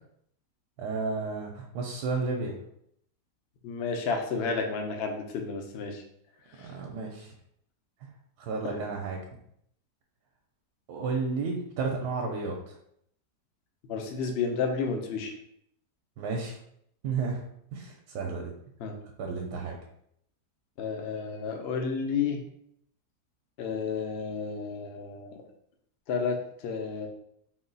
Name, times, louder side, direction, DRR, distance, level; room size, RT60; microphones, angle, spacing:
voice 1, 0.8-2.6 6.6-7.3 8.4-9.2 10.9-12.8 16.2-16.6 17.0-17.4 17.7-18.5 19.2-19.7, right 4 dB, 75° right, 0 dB, 1.1 m, -32 dB
voice 2, 3.6-6.0 6.6-6.7 8.6-8.8 13.9-15.3 18.8-19.0 20.8-22.4 23.6-25.4 26.1-27.1, left 5 dB, 60° left, 3 dB, 0.6 m, -31 dB
4.1 x 2.3 x 3.9 m, 0.71 s
omnidirectional pair, 1.8 m